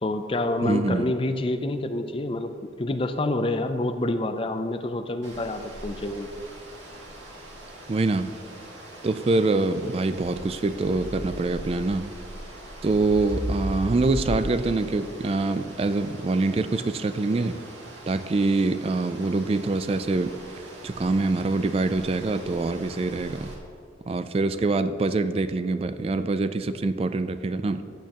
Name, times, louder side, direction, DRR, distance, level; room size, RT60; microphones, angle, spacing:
voice 1, 0.0-6.3, left 1 dB, 30° left, 8 dB, 0.5 m, -27 dB
voice 2, 0.6-1.1 7.9-8.4 9.0-12.1 12.8-17.6 18.1-23.5 24.1-27.9, right 3 dB, 30° right, 11 dB, 0.3 m, -25 dB
sound 1, 5.2-23.5, right 1 dB, 85° right, 2.0 m, -39 dB
14.5 x 8.6 x 3.0 m, 2.5 s
head